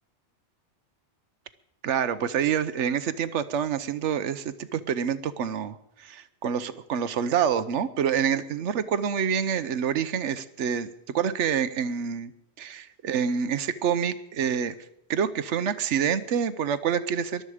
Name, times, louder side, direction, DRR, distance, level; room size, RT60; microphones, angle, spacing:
voice 1, 1.8-12.3 12.6-14.7 15.1-17.4, right 8 dB, 85° right, 13 dB, 1.1 m, -27 dB
20.5 x 12.0 x 4.9 m, 0.84 s
omnidirectional pair, 1.2 m